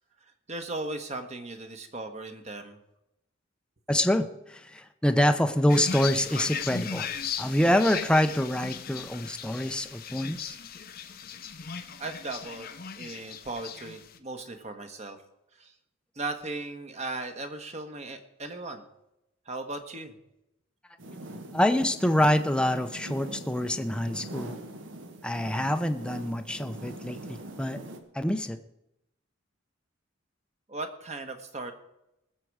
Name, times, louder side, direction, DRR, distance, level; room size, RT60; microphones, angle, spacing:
voice 1, 0.5-2.8 12.0-15.2 15.6-15.7 16.1-18.8 19.5-20.1 30.7-31.7, right 2 dB, 35° right, 6 dB, 1.3 m, -37 dB
voice 2, 3.9-7.1 7.4-10.6 21.5-24.6 25.2-27.8 28.1-28.6, left 1 dB, 5° left, 7 dB, 0.6 m, -26 dB
sound 1, 5.7-14.2, left 7 dB, 50° left, 0.7 m, -37 dB
sound 2, 21.0-28.0, right 1 dB, 70° right, 1.3 m, -43 dB
20.0 x 7.5 x 4.8 m, 0.85 s
head